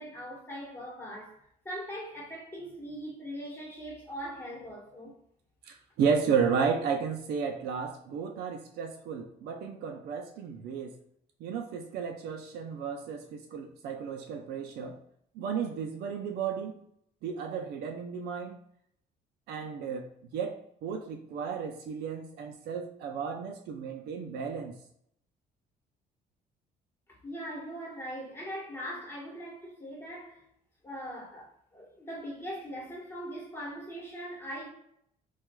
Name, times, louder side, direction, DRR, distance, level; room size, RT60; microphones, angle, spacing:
voice 1, 0.0-1.4 1.6-5.1 27.1-30.4 30.8-34.7, equal, 15° left, 1.2 m, -41 dB
voice 2, 5.6-10.9 11.4-15.0 15.4-16.8 17.2-18.6 19.5-24.8, right 6 dB, 70° right, 0.5 m, -33 dB
4.4 x 2.3 x 2.2 m
cardioid pair, 110°, 17 cm